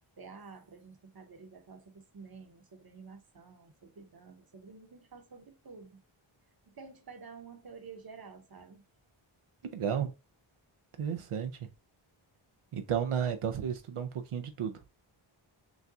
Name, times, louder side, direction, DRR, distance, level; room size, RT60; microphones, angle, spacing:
voice 1, 0.2-6.0 6.7-8.8, right 5 dB, 45° right, 1.0 m, -50 dB
voice 2, 9.7-10.1 11.0-11.5 12.7-14.8, right 8 dB, 85° right, 0.7 m, -32 dB
6.3 x 2.3 x 2.7 m
wide cardioid pair, 95°, 50 cm